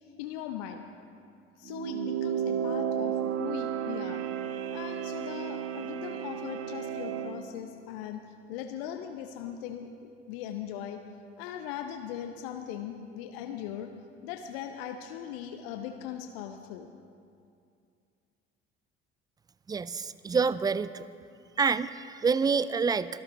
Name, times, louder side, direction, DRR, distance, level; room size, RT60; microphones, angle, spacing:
voice 1, 0.0-0.8 1.6-4.2 4.7-11.0 11.4-13.9 14.2-16.9, left 9 dB, 65° left, 6 dB, 0.8 m, -39 dB
sound 1, 1.6-7.4, right 9 dB, 50° right, 0.9 m, -33 dB
voice 2, 19.7-21.1 21.6-23.2, right 5 dB, 15° right, 17 dB, 0.3 m, -27 dB
23.0 x 12.5 x 3.0 m, 2.4 s
figure-of-eight pair, 55°, 32 cm